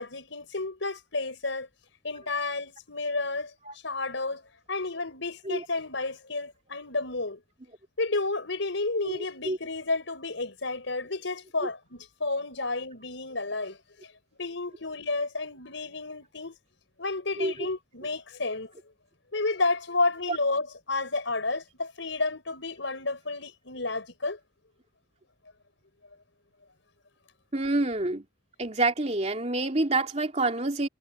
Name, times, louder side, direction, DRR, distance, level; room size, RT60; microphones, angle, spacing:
voice 1, 0.0-1.7 2.0-3.5 3.8-4.4 4.7-7.4 8.0-14.1 14.4-16.6 17.0-18.7 19.3-24.4, left 3 dB, 90° left, 4.8 m, -31 dB
voice 2, 9.0-9.6 17.4-17.7 20.3-20.4 27.5-28.3 28.6-30.9, right 2 dB, 35° right, 2.6 m, -27 dB
head